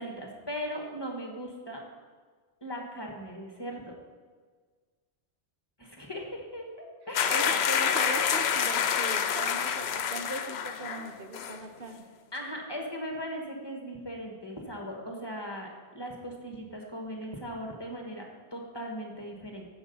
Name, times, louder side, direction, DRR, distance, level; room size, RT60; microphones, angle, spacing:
voice 1, 0.0-1.8 2.6-3.9 5.8-6.7 7.1-7.5 12.3-15.7 15.9-19.7, equal, 25° left, 0 dB, 1.5 m, -38 dB
sound 1, 7.1-11.1 11.3-11.6, left 7 dB, 75° left, 0.9 m, -27 dB
voice 2, 7.3-12.0, right 2 dB, 60° right, 5 dB, 1.0 m, -39 dB
14.5 x 5.4 x 5.5 m, 1.5 s
omnidirectional pair, 1.1 m